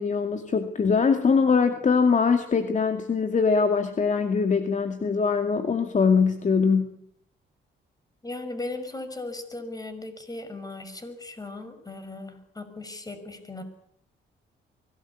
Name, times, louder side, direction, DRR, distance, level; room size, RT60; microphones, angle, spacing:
voice 1, 0.0-7.0, left 5 dB, 40° left, 7 dB, 2.3 m, -22 dB
voice 2, 8.2-13.6, left 2 dB, 20° left, 9 dB, 5.9 m, -37 dB
24.0 x 18.0 x 8.6 m, 0.71 s
cardioid pair, 90°, 20 cm